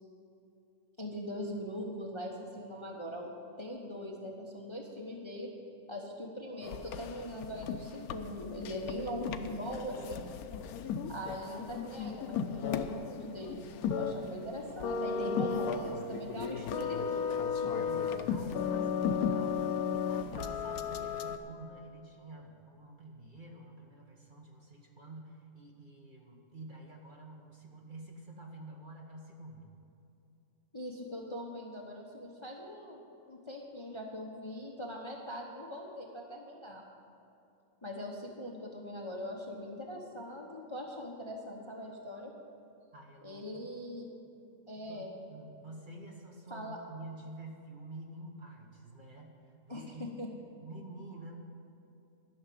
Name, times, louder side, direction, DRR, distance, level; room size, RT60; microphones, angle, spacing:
voice 1, 1.0-3.3 3.6-5.5 5.9-10.3 11.1-13.6 13.9-17.4 17.6-18.0 30.7-33.0 33.3-36.8 37.8-42.3 43.2-44.1 44.7-45.1 46.5-46.8 49.7-50.3, left 1 dB, 20° left, -1 dB, 1.0 m, -41 dB
sound 1, 6.6-21.4, left 6 dB, 75° left, 1.1 m, -35 dB
voice 2, 17.9-29.7 42.9-43.6 44.9-50.1 50.5-51.3, right 2 dB, 35° right, 0 dB, 1.4 m, -49 dB
12.0 x 6.5 x 9.2 m, 2.7 s
omnidirectional pair, 1.6 m